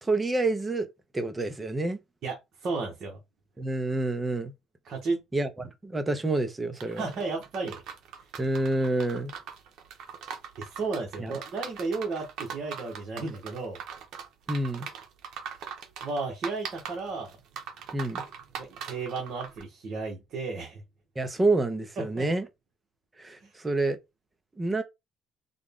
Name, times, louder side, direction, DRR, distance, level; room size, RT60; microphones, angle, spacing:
voice 1, 0.0-0.9 1.1-2.0 3.6-4.5 5.3-7.1 8.4-9.3 11.2-11.3 14.5-14.9 17.9-18.2 21.2-22.5 23.2-24.0 24.6-24.8, right 2 dB, 15° right, 0.6 m, -28 dB
voice 2, 2.2-3.2 4.8-5.2 6.9-7.8 10.6-13.8 16.0-17.4 18.6-20.8 22.0-22.3 23.4-23.5, right 3 dB, 50° right, 1.1 m, -33 dB
sound 1, 6.8-19.6, right 7 dB, 65° right, 0.7 m, -41 dB
3.6 x 2.2 x 3.5 m
cardioid pair, 140°, 0 cm